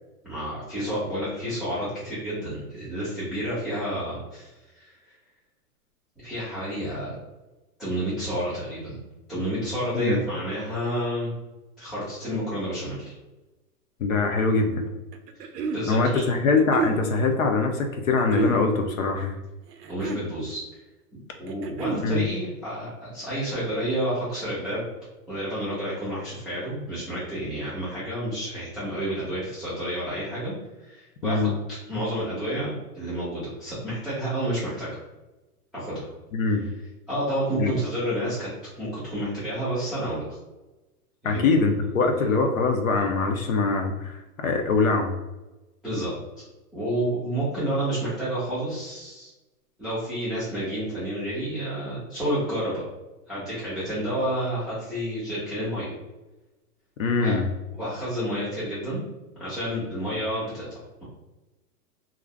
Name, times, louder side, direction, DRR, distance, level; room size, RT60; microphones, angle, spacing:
voice 1, 0.2-4.5 4.7-4.9 6.2-7.2 7.8-9.0 9.3-11.3 11.8-13.1 15.3-16.2 19.9-20.8 21.4-24.8 25.3-30.5 30.8-35.0 35.7-36.1 36.5-36.6 37.1-38.5 38.7-40.4 41.2-41.5 42.2-42.3 45.8-46.4 46.7-49.3 49.8-52.8 53.3-55.9 57.2-57.4 57.8-59.0 59.4-61.0, right 1 dB, ahead, -23 dB, 0.4 m, -30 dB
voice 2, 14.0-14.9 15.9-19.4 22.0-22.3 31.2-31.5 36.3-36.7 37.6-37.7 41.2-45.1 57.0-57.5, left 4 dB, 60° left, 4 dB, 0.5 m, -23 dB
sound 1, 15.1-15.9 16.6-17.0 18.2-18.6 19.7-20.3 21.5-22.1, right 5 dB, 85° right, 0.6 m, -29 dB
2.5 x 2.1 x 3.3 m, 1.1 s
hypercardioid pair, 165°, 48 cm